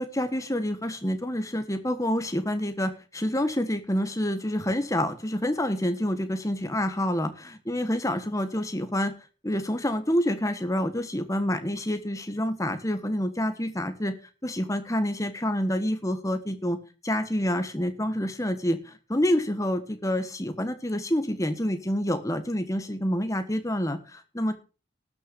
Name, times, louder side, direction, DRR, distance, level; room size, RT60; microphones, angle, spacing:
voice 1, 0.0-9.1 9.4-14.1 14.4-16.8 17.0-24.5, left 1 dB, 15° left, 9 dB, 1.3 m, -27 dB
12.5 x 6.9 x 6.8 m, 0.35 s
head